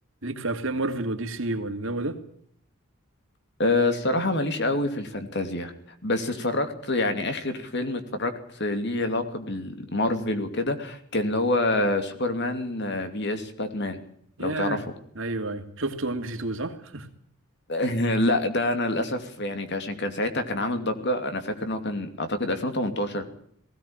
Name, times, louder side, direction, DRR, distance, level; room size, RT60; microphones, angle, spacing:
voice 1, 0.2-2.2 14.4-14.8 15.1-17.1, right 2 dB, 60° right, 6 dB, 2.6 m, -30 dB
voice 2, 3.6-5.7 6.0-14.0 14.4-14.8 17.7-23.2, left 2 dB, 50° left, 8 dB, 2.8 m, -27 dB
19.0 x 17.0 x 8.9 m, 0.66 s
head